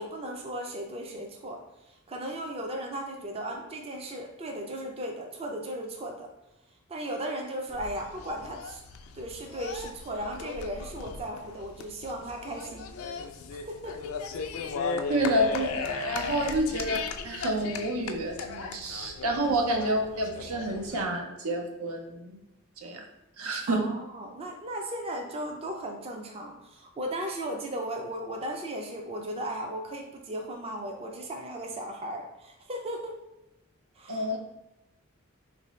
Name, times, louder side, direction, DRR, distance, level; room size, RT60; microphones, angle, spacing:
voice 1, 0.0-1.6 1.9-6.3 6.9-8.8 9.1-13.0 13.5-13.9 16.4-16.6 19.4-19.6 23.7-33.2 34.0-34.3, right 1 dB, 30° right, 2 dB, 0.4 m, -36 dB
sound 1, 7.7-21.0, left 5 dB, 75° left, 0.3 m, -36 dB
voice 2, 15.1-17.0 17.2-22.4 22.8-23.0 23.4-23.9 34.1-34.4, right 1 dB, 90° right, 2 dB, 0.6 m, -29 dB
3.5 x 2.6 x 3.1 m, 0.91 s
head